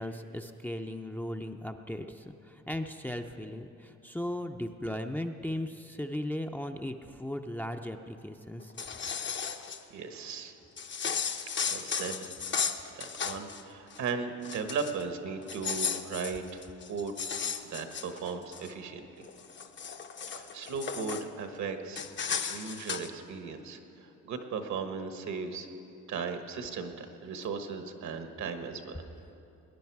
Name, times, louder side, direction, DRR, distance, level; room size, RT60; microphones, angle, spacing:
voice 1, 0.0-8.7, left 1 dB, 5° left, 5 dB, 0.5 m, -37 dB
sound 1, 8.6-9.8 10.8-13.6 13.9-14.1 14.4-15.0 15.4-18.7 19.2-21.3 22.0-23.1, left 6 dB, 40° left, 0.7 m, -35 dB
voice 2, 9.9-10.5 11.7-17.3 17.6-19.0 20.4-22.0 22.5-25.7 26.1-29.0, right 5 dB, 65° right, 7 dB, 1.3 m, -37 dB
19.5 x 10.5 x 4.7 m, 2.8 s
cardioid pair, 90°, 30 cm